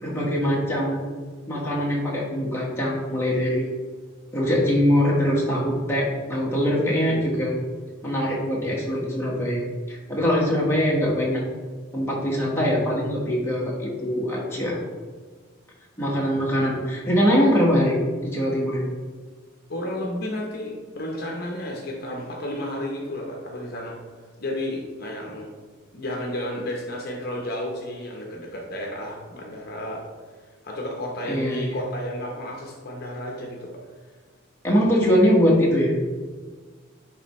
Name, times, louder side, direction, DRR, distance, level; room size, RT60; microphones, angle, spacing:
voice 1, 0.0-1.0 1.5-3.7 4.3-7.6 8.0-11.4 11.9-14.8 16.0-18.9 31.2-31.8 34.6-36.0, equal, 10° left, -5 dB, 1.3 m, -22 dB
voice 2, 19.7-24.0 24.4-25.5 25.9-30.1 30.6-33.8, left 1 dB, 50° left, -1 dB, 0.9 m, -32 dB
10.0 x 3.4 x 3.1 m, 1.5 s
head